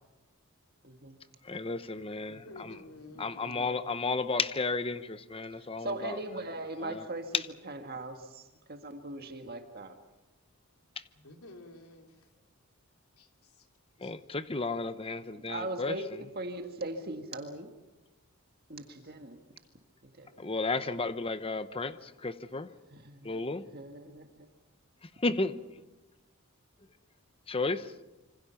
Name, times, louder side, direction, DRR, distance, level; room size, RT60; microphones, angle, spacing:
voice 1, 0.8-1.2 3.4-3.8 5.8-10.0 15.5-17.7 18.7-19.4 20.2-20.5 22.9-23.4 23.7-24.3, right 2 dB, 45° right, 5 dB, 1.8 m, -39 dB
voice 2, 1.5-2.7 3.2-6.2 6.8-7.0 7.3-7.4 14.0-15.9 20.4-22.7 23.2-23.6 25.2-25.5 27.5-27.8, left 3 dB, 25° left, 12 dB, 0.9 m, -33 dB
voice 3, 2.3-3.7 11.1-12.3 13.2-13.7 14.0-14.1 19.0-19.1, left 2 dB, 80° left, 4 dB, 3.0 m, -52 dB
27.0 x 25.0 x 5.8 m, 1.1 s
head